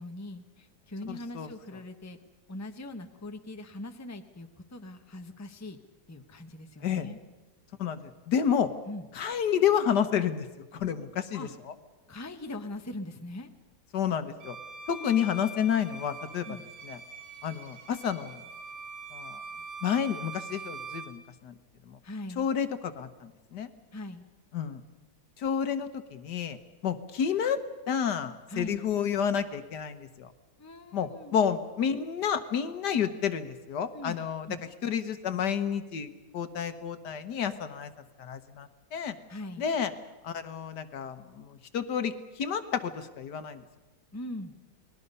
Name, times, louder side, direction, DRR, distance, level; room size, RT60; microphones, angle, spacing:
voice 1, 0.0-2.2 2.5-5.8 6.1-7.2 8.9-9.1 11.3-11.5 12.1-13.5 16.4-16.7 22.0-22.5 23.9-24.3 28.5-28.8 30.6-31.3 33.9-34.2 34.5-34.6 39.3-39.7 44.1-44.5, left 1 dB, 10° left, 6 dB, 1.0 m, -41 dB
voice 2, 1.1-1.5 6.8-7.1 7.8-8.7 9.2-11.5 13.9-14.6 14.9-16.5 16.9-17.0 17.4-18.4 19.1-19.4 19.8-21.5 21.9-22.0 22.4-23.7 24.5-24.8 25.4-26.6 26.8-27.6 27.9-30.3 30.9-34.5 34.8-36.1 36.3-37.9 38.2-39.2 39.6-39.9 40.2-43.6, left 8 dB, 75° left, 10 dB, 1.7 m, -30 dB
Bowed string instrument, 14.4-21.2, right 3 dB, 55° right, 3.3 m, -43 dB
29.5 x 20.5 x 5.5 m, 1.1 s
omnidirectional pair, 1.8 m